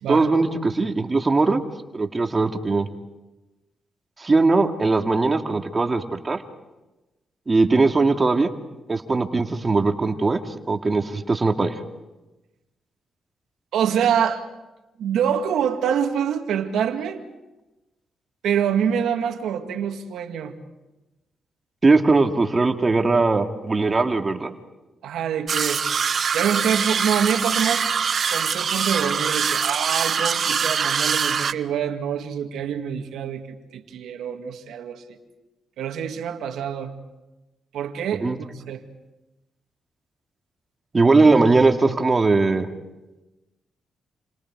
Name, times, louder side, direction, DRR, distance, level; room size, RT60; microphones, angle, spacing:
voice 1, 0.1-1.6 1.9-2.9 4.2-6.4 7.5-8.5 8.9-10.4 10.7-11.8 21.8-24.5 38.2-38.4 40.9-42.7, right 3 dB, 35° right, 5 dB, 2.4 m, -20 dB
voice 2, 13.7-14.5 15.0-17.2 18.4-20.5 25.0-25.8 26.3-27.9 28.3-35.2 35.8-37.0 37.7-38.8, right 8 dB, 80° right, 6 dB, 2.2 m, -25 dB
sound 1, 25.5-31.5, right 6 dB, 60° right, 0.8 m, -23 dB
29.5 x 27.5 x 4.8 m, 1.1 s
supercardioid pair, 55°, 0 cm